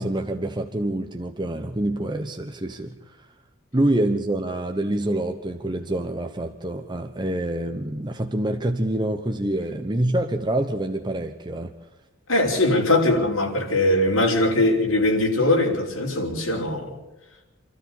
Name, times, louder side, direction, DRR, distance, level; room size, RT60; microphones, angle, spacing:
voice 1, 0.0-3.3 3.7-11.7, right 1 dB, 20° right, 1.0 m, -26 dB
voice 2, 12.3-17.0, left 1 dB, 70° left, 5.8 m, -21 dB
28.5 x 13.0 x 8.7 m
head